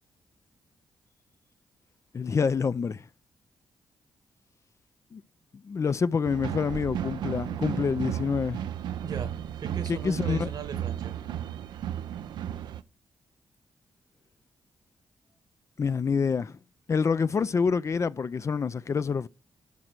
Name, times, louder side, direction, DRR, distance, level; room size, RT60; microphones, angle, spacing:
voice 1, 2.1-3.0 5.1-5.2 5.6-8.6 9.9-10.5 15.8-16.6 16.9-19.3, left 5 dB, 40° left, 0.4 m, -27 dB
sound 1, 6.3-12.8, right 10 dB, 80° right, 0.5 m, -34 dB
voice 2, 9.0-11.2, right 6 dB, 65° right, 1.4 m, -39 dB
12.0 x 5.0 x 4.5 m
cardioid pair, 65°, 7 cm